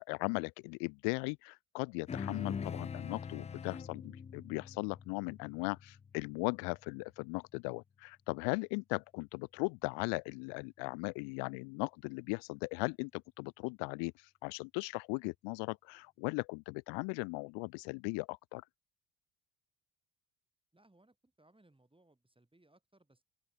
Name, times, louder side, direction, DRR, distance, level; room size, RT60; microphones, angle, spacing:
voice 1, 0.1-18.6, left 35 dB, 90° left, 0.6 m, -38 dB
sound 1, 2.1-6.8, left 6 dB, 20° left, 0.3 m, -43 dB
voice 2, 20.7-23.2, right 2 dB, 10° right, 8.0 m, -67 dB
supercardioid pair, 70°, 41 cm